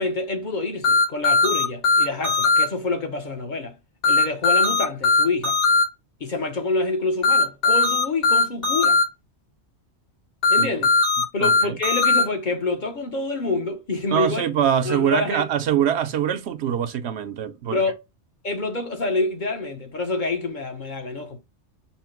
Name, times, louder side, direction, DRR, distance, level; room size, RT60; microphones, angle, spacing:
voice 1, 0.0-3.7 4.1-5.6 6.2-9.0 10.5-10.9 11.3-14.4 14.8-15.5 17.7-17.9 18.4-21.4, left 3 dB, 45° left, 0.8 m, -27 dB
sound 1, 0.8-2.6 4.0-5.8 7.2-9.0 10.4-12.2, left 3 dB, 80° left, 2.6 m, -18 dB
voice 2, 11.4-11.8 14.1-17.8, right 9 dB, 70° right, 0.8 m, -23 dB
5.6 x 2.0 x 4.4 m
omnidirectional pair, 1.2 m